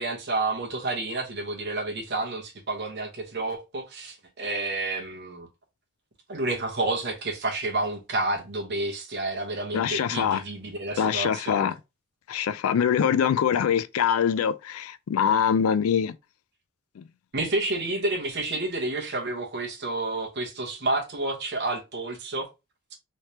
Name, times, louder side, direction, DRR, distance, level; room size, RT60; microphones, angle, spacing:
voice 1, 0.0-5.5 6.3-11.7 17.3-22.5, right 2 dB, 55° right, 1.0 m, -30 dB
voice 2, 9.7-10.4 11.0-11.7 12.3-16.1 17.0-17.1, left 8 dB, 85° left, 0.4 m, -24 dB
3.2 x 3.2 x 2.8 m
head